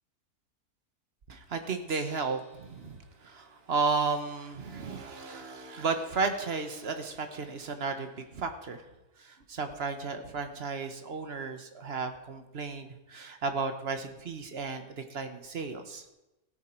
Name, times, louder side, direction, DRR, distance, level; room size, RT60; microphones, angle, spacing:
voice 1, 1.3-8.8 9.2-16.0, right 4 dB, 45° right, 7 dB, 1.3 m, -34 dB
Gong, 1.9-8.2 9.0-9.1, equal, 5° right, 4.0 m, -60 dB
17.0 x 9.2 x 4.5 m, 0.98 s
omnidirectional pair, 1.7 m